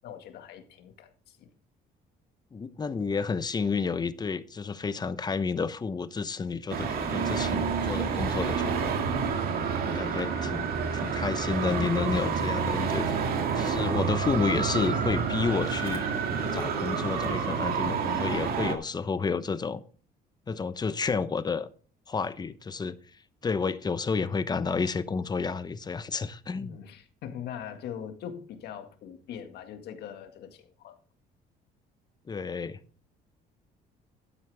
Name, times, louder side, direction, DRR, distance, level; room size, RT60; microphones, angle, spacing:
voice 1, 0.0-1.5 6.8-7.0 26.5-31.0, left 9 dB, 75° left, 1.9 m, -42 dB
voice 2, 2.5-9.0 9.9-10.7 10.9-16.0 16.4-19.8 20.5-21.7 22.1-23.0 23.4-26.8 32.3-32.8, left 5 dB, 25° left, 0.9 m, -30 dB
Traffic noise roadway noise, 6.7-18.7, right 6 dB, 65° right, 2.2 m, -29 dB
12.0 x 9.4 x 3.5 m
cardioid pair, 110°, 17 cm